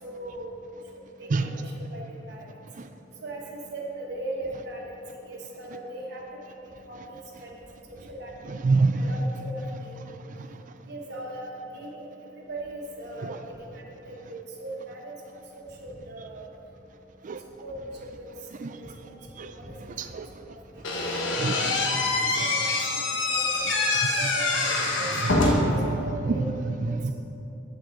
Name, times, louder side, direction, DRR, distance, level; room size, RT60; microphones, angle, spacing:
voice 1, 0.0-0.5 1.2-2.4 3.2-3.4 3.7-5.0 5.3-6.5 6.9-7.5 7.9-8.3 8.7-9.6 10.9-12.1 12.4-15.1 15.5-16.4 17.6-18.3 18.8-18.9 19.4-19.7 22.4-22.8 23.3-24.7 25.0-26.4 26.9-27.0, right 2 dB, 60° right, -2 dB, 1.3 m, -39 dB
voice 2, 8.5-9.1 13.2-13.4 17.2-17.4 18.6-18.7 19.4-19.5 20.0-20.3 21.4-22.0 25.5-25.7 26.2-26.4 27.0-27.1, right 3 dB, 45° right, 8 dB, 0.4 m, -26 dB
Slam / Squeak, 20.8-25.8, left 2 dB, 80° left, 1.0 m, -25 dB
7.7 x 7.1 x 3.8 m, 2.8 s
head